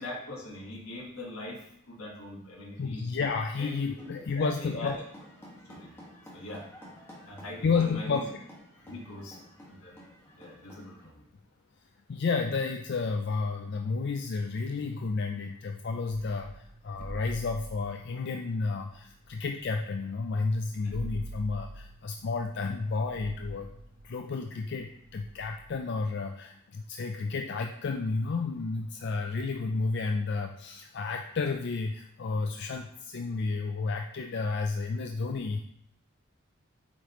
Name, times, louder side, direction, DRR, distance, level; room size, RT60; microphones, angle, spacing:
voice 1, 0.0-3.0 3.6-5.0 5.6-5.9 6.3-6.6 7.2-8.3 8.8-9.4 9.7-10.0 10.3-11.2 20.8-20.9, left 1 dB, 80° left, -1 dB, 1.7 m, -42 dB
voice 2, 2.8-5.0 7.6-8.2 12.1-23.7 24.0-35.6, left 4 dB, 55° left, 4 dB, 0.4 m, -31 dB
sound 1, 3.4-11.0, equal, 10° left, 1.7 m, -52 dB
sound 2, 16.1-20.0 20.3-20.4 20.6-25.8, right 2 dB, 40° right, 0.5 m, -45 dB
8.4 x 5.0 x 3.1 m, 0.73 s
head